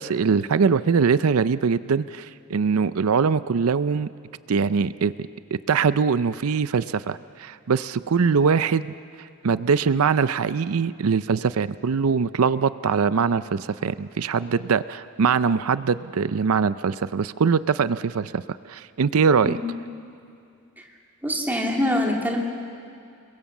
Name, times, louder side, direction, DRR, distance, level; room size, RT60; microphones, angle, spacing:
voice 1, 0.0-4.1 4.5-5.1 5.5-18.4 18.7-19.6, right 5 dB, 80° right, 15 dB, 0.5 m, -22 dB
voice 2, 21.2-22.4, left 1 dB, 10° right, -1 dB, 2.7 m, -24 dB
29.5 x 22.0 x 7.3 m, 2.5 s
head